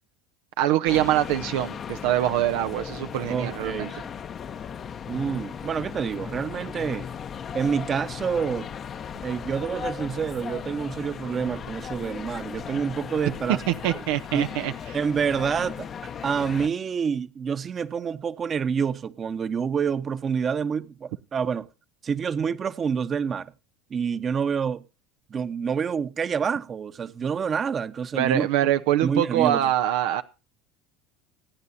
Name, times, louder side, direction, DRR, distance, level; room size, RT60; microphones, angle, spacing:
voice 1, 0.6-3.9 13.7-14.7 28.1-30.2, right 12 dB, 75° right, 0.8 m, -24 dB
sound 1, 0.8-16.7, left 7 dB, 40° left, 1.0 m, -37 dB
voice 2, 3.3-4.1 5.1-7.1 7.5-8.7 9.2-13.6 14.3-14.5 14.9-21.7 22.0-23.5 23.9-24.8 25.3-28.7 29.0-29.6, right 6 dB, 35° right, 1.1 m, -27 dB
25.0 x 9.5 x 2.8 m
hypercardioid pair, 85°, 0 cm